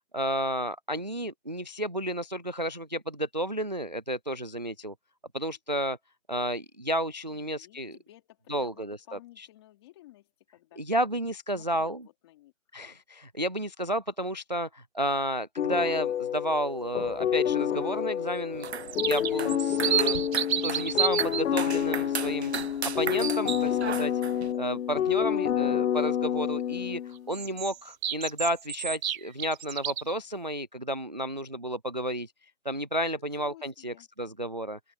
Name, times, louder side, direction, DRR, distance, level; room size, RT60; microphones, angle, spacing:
voice 1, 0.1-4.9 5.3-6.0 6.3-8.0 8.5-9.5 10.8-12.0 12.7-18.7 19.0-20.2 20.6-22.5 22.8-24.1 24.6-32.3 32.6-34.8, right 1 dB, 35° right, 0.4 m, -32 dB
voice 2, 7.2-11.0 11.5-12.5 33.2-34.1, left 15 dB, 20° left, 3.8 m, -55 dB
sound 1, 15.6-27.3, left 9 dB, 70° left, 0.6 m, -29 dB
sound 2, 18.5-24.5, right 7 dB, 50° right, 1.0 m, -37 dB
sound 3, 18.6-21.4 27.3-30.2, right 9 dB, 80° right, 0.7 m, -30 dB
open air
hypercardioid pair, 175°, 40 cm